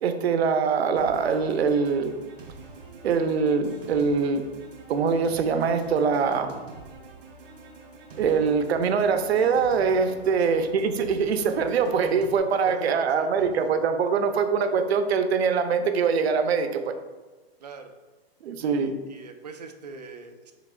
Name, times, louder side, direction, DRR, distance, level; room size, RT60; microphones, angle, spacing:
voice 1, 0.0-2.1 3.0-4.4 4.9-6.5 8.2-16.9 18.4-19.0, right 5 dB, 85° right, 8 dB, 0.6 m, -23 dB
sound 1, 1.0-12.4, right 3 dB, 60° right, 1.1 m, -45 dB
voice 2, 10.2-10.6 11.0-11.1 12.5-13.5 17.6-17.9 18.6-20.5, right 4 dB, 45° right, 6 dB, 0.4 m, -41 dB
5.8 x 3.5 x 2.4 m, 1.3 s
hypercardioid pair, 180°, 31 cm